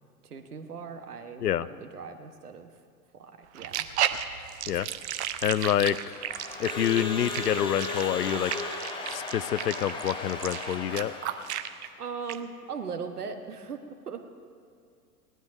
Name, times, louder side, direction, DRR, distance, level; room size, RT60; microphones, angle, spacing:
voice 1, 0.2-2.7 3.2-3.9 12.0-13.8 14.1-14.3, right 5 dB, 70° right, 6 dB, 1.4 m, -39 dB
sound 1, 3.5-11.9 12.3-12.4, right 11 dB, 45° right, 0.8 m, -33 dB
voice 2, 5.4-6.2 6.6-8.5 9.1-11.1, left 10 dB, 75° left, 17 dB, 0.6 m, -27 dB
Crowd / Alarm, 6.1-11.6, left 3 dB, 10° left, 1.3 m, -36 dB
17.5 x 12.0 x 5.2 m, 2.3 s
figure-of-eight pair, 95°, 47 cm